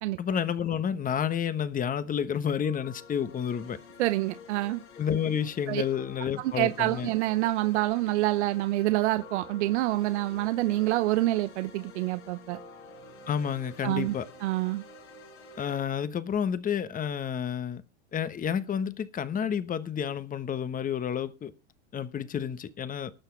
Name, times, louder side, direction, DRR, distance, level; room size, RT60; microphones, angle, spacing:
voice 1, 0.2-3.8 5.0-7.1 13.3-14.2 15.6-17.8 18.1-21.5 21.9-23.1, left 8 dB, 25° left, 1.2 m, -30 dB
sound 1, 2.6-15.8, left 3 dB, 80° left, 6.0 m, -49 dB
voice 2, 4.0-4.8 5.7-5.8 6.4-12.6 13.8-14.1 14.4-14.8, right 17 dB, 70° right, 0.9 m, -27 dB
19.5 x 6.7 x 4.7 m
hypercardioid pair, 105°, 35 cm